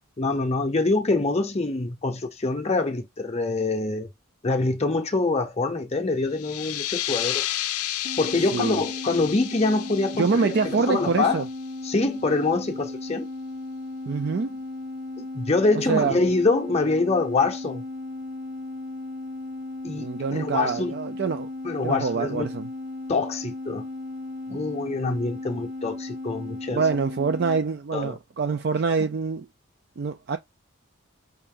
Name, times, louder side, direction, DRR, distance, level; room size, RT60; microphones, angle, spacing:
voice 1, 0.2-4.1 4.4-7.5 8.2-11.4 11.8-13.3 15.2-17.8 19.8-20.9 21.6-22.5 23.1-23.9 24.5-26.8 27.9-28.2 29.0-29.1, left 3 dB, 30° left, 0.7 m, -25 dB
sound 1, 6.3-11.7, left 13 dB, 90° left, 0.5 m, -32 dB
sound 2, 8.0-27.6, left 2 dB, 85° right, 2.5 m, -36 dB
voice 2, 10.2-11.4 14.1-14.6 15.7-16.2 20.0-21.5 21.8-22.7 26.7-29.5 30.0-30.4, right 4 dB, 50° right, 0.4 m, -25 dB
5.6 x 2.6 x 3.6 m
head